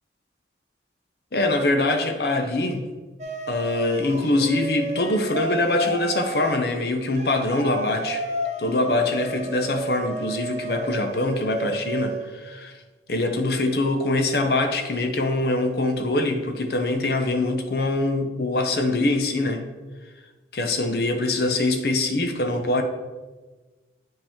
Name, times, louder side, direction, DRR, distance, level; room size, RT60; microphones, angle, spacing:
voice 1, 1.3-2.8 3.5-8.3 8.6-12.8 13.1-19.7 20.5-22.8, left 2 dB, 60° left, 5 dB, 0.7 m, -23 dB
sound 1, 3.2-6.6 7.2-12.3, right 2 dB, 40° right, 0.9 m, -32 dB
9.2 x 5.1 x 3.6 m, 1.3 s
head